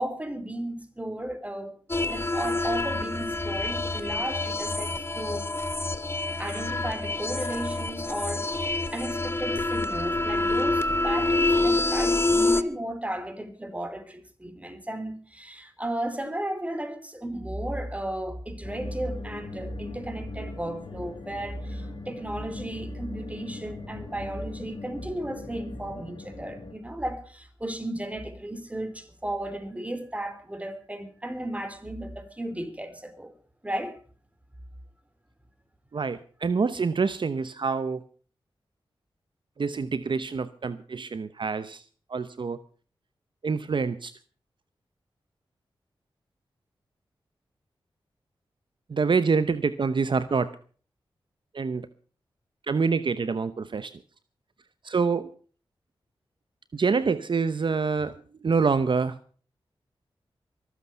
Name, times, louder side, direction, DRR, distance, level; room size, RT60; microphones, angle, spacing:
voice 1, 0.0-1.7 2.1-5.4 6.3-33.3 33.6-34.0, right 1 dB, 15° right, 3.3 m, -34 dB
sound 1, 1.9-12.6, left 2 dB, 25° left, 1.1 m, -27 dB
sound 2, 18.6-26.7, left 3 dB, 50° left, 4.2 m, -42 dB
voice 2, 35.9-38.0 39.6-41.8 42.1-42.6 43.4-44.1 48.9-50.5 51.5-51.9 52.7-53.9 54.8-55.3 56.7-58.1 58.4-59.2, right 5 dB, 55° right, 0.8 m, -26 dB
23.5 x 8.4 x 5.6 m
cardioid pair, 55°, 10 cm